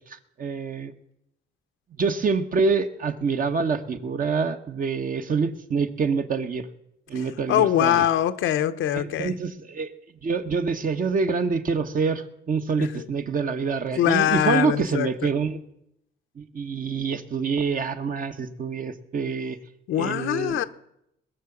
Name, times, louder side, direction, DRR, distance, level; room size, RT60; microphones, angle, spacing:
voice 1, 0.1-0.9 1.9-6.7 7.1-8.0 8.9-9.9 10.2-15.6 16.4-19.6 20.0-20.7, right 5 dB, 45° right, 1.3 m, -26 dB
voice 2, 7.1-9.3 12.8-12.9 14.0-15.1 19.9-20.6, left 11 dB, 80° left, 0.9 m, -23 dB
20.5 x 6.8 x 7.3 m
cardioid pair, 90°, 20 cm